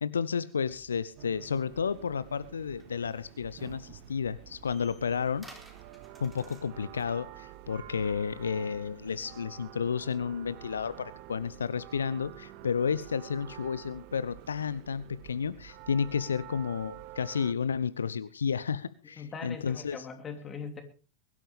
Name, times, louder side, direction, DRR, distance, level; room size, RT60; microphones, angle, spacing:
voice 1, 0.0-5.5 6.2-20.1, left 6 dB, 70° left, 16 dB, 0.6 m, -32 dB
sound 1, 0.7-7.1, right 2 dB, 5° right, 3.9 m, -57 dB
sound 2, 1.2-17.5, right 15 dB, 45° right, 1.0 m, -49 dB
voice 2, 19.2-20.8, left 5 dB, 20° left, 6 dB, 3.0 m, -41 dB
22.0 x 12.5 x 3.5 m, 0.38 s
figure-of-eight pair, 90°, 0 cm